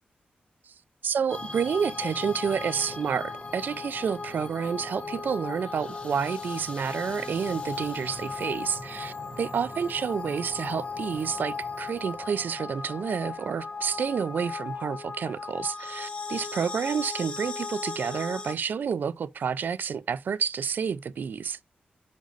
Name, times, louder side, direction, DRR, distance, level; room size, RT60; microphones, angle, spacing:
voice 1, 1.0-21.6, right 7 dB, 70° right, 0.5 m, -29 dB
sound 1, 1.3-18.5, left 4 dB, 35° left, 1.6 m, -37 dB
10.5 x 5.2 x 2.5 m
wide cardioid pair, 140°, 3 cm